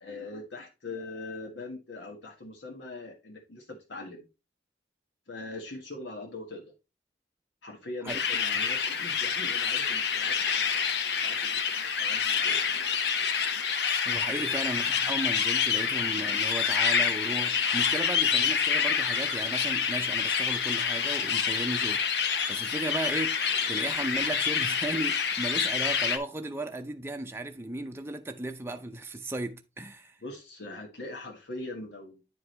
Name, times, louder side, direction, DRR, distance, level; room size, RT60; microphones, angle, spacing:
voice 1, 0.0-4.3 5.3-6.7 7.6-12.6 14.2-14.6 25.1-25.3 30.2-32.2, left 2 dB, 90° left, 1.4 m, -42 dB
sound 1, 8.1-26.2, left 6 dB, 70° left, 0.8 m, -27 dB
voice 2, 14.0-30.2, right 1 dB, 15° right, 0.5 m, -35 dB
9.7 x 4.8 x 3.1 m
head